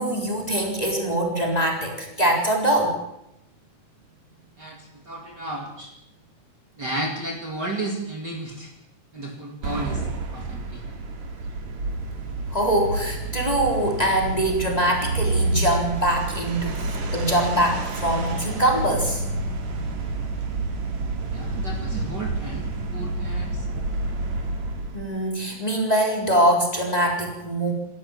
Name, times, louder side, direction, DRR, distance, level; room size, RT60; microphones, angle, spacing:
voice 1, 0.0-3.0 12.5-16.8 17.1-19.2 24.9-27.7, right 1 dB, 10° left, 0 dB, 3.8 m, -23 dB
voice 2, 4.6-5.9 6.8-8.7 9.1-10.0 10.3-10.8 21.3-23.7, right 2 dB, 35° right, 1 dB, 2.7 m, -33 dB
sound 1, 9.6-25.1, right 2 dB, 70° right, 3.6 m, -29 dB
28.0 x 13.0 x 7.2 m, 0.87 s
omnidirectional pair, 3.3 m